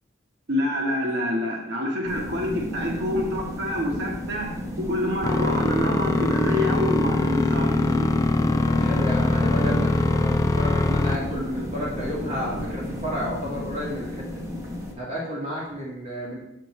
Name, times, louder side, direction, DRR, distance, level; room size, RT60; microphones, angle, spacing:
voice 1, 0.5-7.8, left 1 dB, 55° right, 0 dB, 1.3 m, -27 dB
sound 1, 2.1-14.9, left 1 dB, 15° right, 0.9 m, -32 dB
sound 2, 5.2-11.2, left 2 dB, 15° left, 0.3 m, -23 dB
voice 2, 8.7-14.5 15.0-16.4, equal, 30° right, -6 dB, 1.9 m, -32 dB
6.7 x 6.6 x 3.2 m, 0.81 s
head